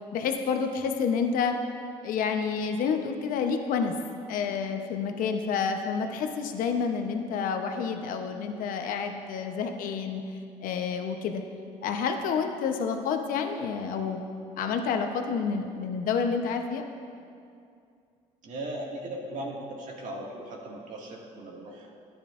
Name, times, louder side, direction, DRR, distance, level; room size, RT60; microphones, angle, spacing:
voice 1, 0.1-1.5 2.0-3.9 4.3-10.2 10.6-11.4 11.8-14.2 14.6-16.8, left 6 dB, 65° left, 5 dB, 0.9 m, -29 dB
voice 2, 18.4-21.9, right 1 dB, 55° right, -2 dB, 2.1 m, -38 dB
13.5 x 9.9 x 2.6 m, 2.4 s
supercardioid pair, 85°, 15 cm